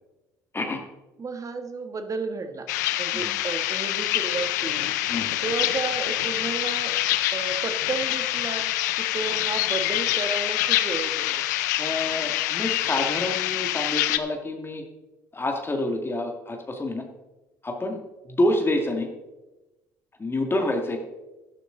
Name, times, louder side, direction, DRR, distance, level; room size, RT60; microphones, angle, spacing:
voice 1, 0.5-0.8 3.1-3.3 5.1-5.3 11.8-14.8 15.3-17.0 17.6-18.0 18.3-19.1 20.2-21.0, left 1 dB, 25° left, 3 dB, 2.1 m, -27 dB
voice 2, 1.2-2.7 3.0-5.0 5.4-6.9 7.3-11.4, right 4 dB, 35° right, 7 dB, 1.7 m, -32 dB
sound 1, 2.7-14.2, left 15 dB, 85° left, 0.5 m, -26 dB
11.5 x 11.0 x 3.9 m, 1.0 s
hypercardioid pair, 60°, 9 cm